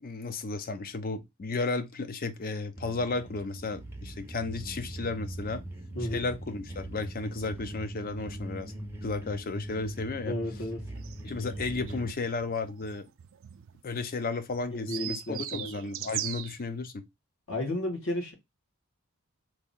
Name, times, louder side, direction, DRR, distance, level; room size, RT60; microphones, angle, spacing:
voice 1, 0.0-5.6 6.0-8.7 9.0-10.3 11.2-13.1 13.8-17.0, left 3 dB, 40° left, 0.5 m, -33 dB
sound 1, 2.7-12.1, right 1 dB, 10° right, 0.6 m, -41 dB
voice 2, 10.2-10.8 14.7-15.7 17.5-18.3, left 1 dB, 60° left, 1.5 m, -33 dB
sound 2, 10.9-16.6, right 11 dB, 65° right, 0.4 m, -40 dB
3.0 x 2.5 x 3.7 m
head